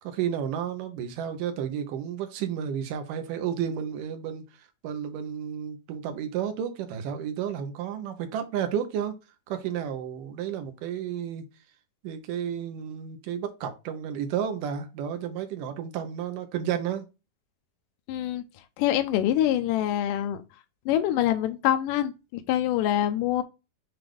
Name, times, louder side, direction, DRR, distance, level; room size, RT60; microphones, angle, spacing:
voice 1, 0.0-9.1 9.5-11.5 12.0-17.1, right 9 dB, 75° right, 2.5 m, -32 dB
voice 2, 18.1-18.4 18.8-20.4 20.9-23.4, left 12 dB, 80° left, 2.2 m, -25 dB
7.7 x 2.6 x 4.8 m
omnidirectional pair, 4.0 m